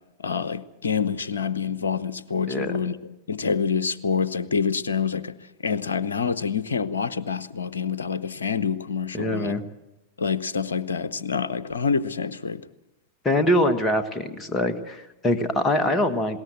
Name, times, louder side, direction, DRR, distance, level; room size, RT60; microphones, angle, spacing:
voice 1, 0.2-3.0 3.3-5.3 5.6-9.5 10.2-12.6, left 6 dB, 70° left, 0.8 m, -26 dB
voice 2, 9.1-9.7 13.2-16.4, left 1 dB, 15° left, 1.6 m, -23 dB
20.5 x 18.0 x 7.7 m
figure-of-eight pair, 90°, 0 cm